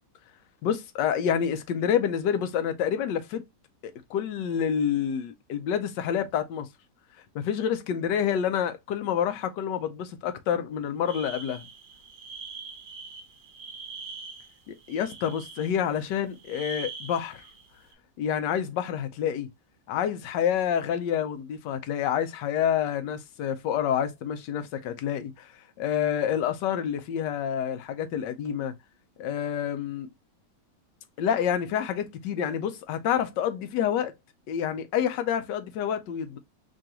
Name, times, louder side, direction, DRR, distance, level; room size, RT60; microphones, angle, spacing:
voice 1, 0.6-3.4 3.8-6.7 7.3-11.7 14.7-17.4 18.2-19.5 19.9-25.5 25.8-28.7 29.2-30.1 31.2-34.1 34.5-36.4, left 9 dB, 80° left, 1.3 m, -28 dB
sound 1, 11.1-16.0 16.3-17.9, right 5 dB, 65° right, 1.3 m, -43 dB
5.0 x 2.4 x 2.8 m
omnidirectional pair, 1.9 m